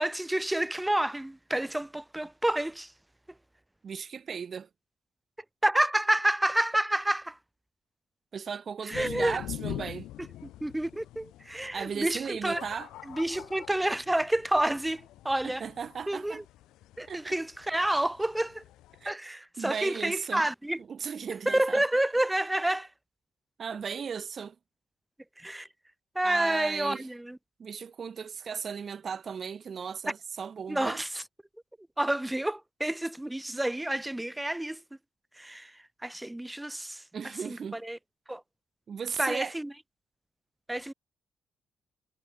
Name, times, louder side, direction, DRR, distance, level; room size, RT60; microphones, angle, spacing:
voice 1, 0.0-2.9 5.6-7.4 8.8-9.4 10.4-12.6 13.0-15.7 16.1-16.4 17.0-18.6 19.0-20.8 21.4-22.9 25.4-25.7 26.1-27.4 30.7-31.2 32.0-34.8 35.3-38.0 38.3-38.4 39.2-39.7 40.7-40.9, right 1 dB, 10° right, 3.1 m, -29 dB
voice 2, 3.8-4.7 8.3-10.1 11.7-12.9 15.4-16.4 17.1-17.3 19.0-19.2 19.6-20.4 20.9-21.8 23.6-24.5 26.2-27.0 27.6-31.0 37.1-37.8 38.9-39.5, right 6 dB, 50° right, 2.5 m, -36 dB
sound 1, 8.9-19.1, left 14 dB, 90° left, 5.7 m, -45 dB
cardioid pair, 90°, 0 cm